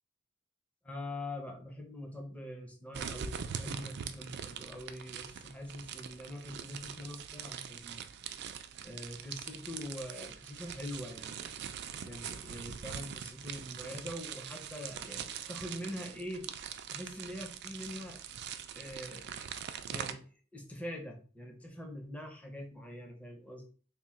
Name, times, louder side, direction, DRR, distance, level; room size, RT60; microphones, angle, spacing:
voice 1, 0.8-8.1 8.8-11.5 12.0-16.5 16.9-18.2 18.8-19.3 19.8-23.7, left 1 dB, 5° left, 1 dB, 0.6 m, -44 dB
sound 1, 2.9-20.1, right 8 dB, 55° right, 0.4 m, -43 dB
3.6 x 2.2 x 4.2 m, 0.41 s
head